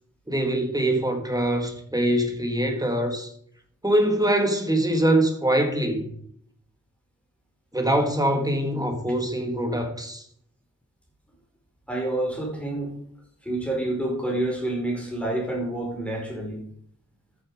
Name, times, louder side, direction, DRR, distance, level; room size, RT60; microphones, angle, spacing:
voice 1, 0.3-3.3 3.8-6.1 7.7-10.2, right 1 dB, 10° right, 2.1 m, -23 dB
voice 2, 11.9-13.0 13.4-16.6, right 1 dB, 5° left, 4.9 m, -28 dB
13.5 x 7.0 x 5.1 m
wide cardioid pair, 75°, 31 cm